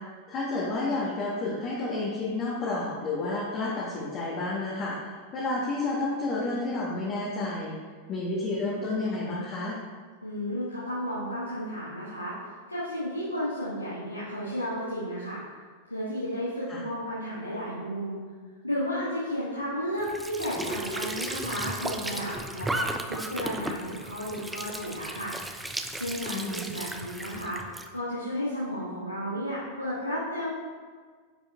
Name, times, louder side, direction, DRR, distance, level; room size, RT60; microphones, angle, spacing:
voice 1, 0.3-7.7 8.1-9.8 16.7-16.8 26.3-26.7, left 2 dB, 35° left, -6 dB, 1.3 m, -30 dB
voice 2, 10.2-12.3 12.7-15.4 15.9-18.2 18.6-25.3 25.9-27.6 27.9-30.5, equal, 85° left, -10 dB, 1.4 m, -33 dB
Squeak / Sink (filling or washing) / Trickle dribble, 20.0-27.9, right 1 dB, 5° right, 0.5 m, -35 dB
9.9 x 5.1 x 2.4 m, 1.5 s
figure-of-eight pair, 90°, 0 cm